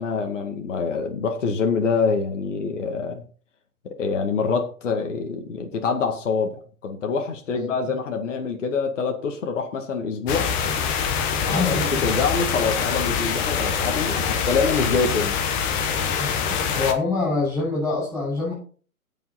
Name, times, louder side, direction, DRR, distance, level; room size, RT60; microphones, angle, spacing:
voice 1, 0.0-3.2 3.8-6.6 6.8-10.5 11.4-15.4, left 5 dB, 55° left, 4 dB, 2.1 m, -25 dB
sound 1, 10.3-16.9, left 7 dB, 20° left, 1.2 m, -24 dB
voice 2, 11.4-12.1 16.0-18.5, left 3 dB, ahead, -5 dB, 6.8 m, -26 dB
17.0 x 6.0 x 4.2 m, 0.40 s
figure-of-eight pair, 135°, 44 cm